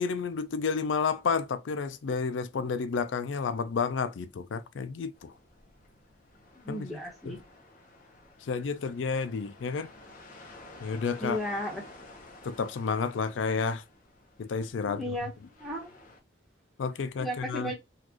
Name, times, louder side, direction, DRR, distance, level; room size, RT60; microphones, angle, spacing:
voice 1, 0.0-5.3 6.7-6.9 7.3-7.4 8.5-9.9 10.8-11.4 12.4-13.8 14.4-15.0 16.8-17.7, left 5 dB, 85° left, 0.4 m, -31 dB
sound 1, 5.1-16.2, left 2 dB, 45° left, 1.0 m, -52 dB
voice 2, 6.5-7.4 11.2-11.9 14.9-15.3 15.6-15.9 17.2-17.7, equal, ahead, 1.2 m, -34 dB
4.0 x 2.5 x 3.0 m
head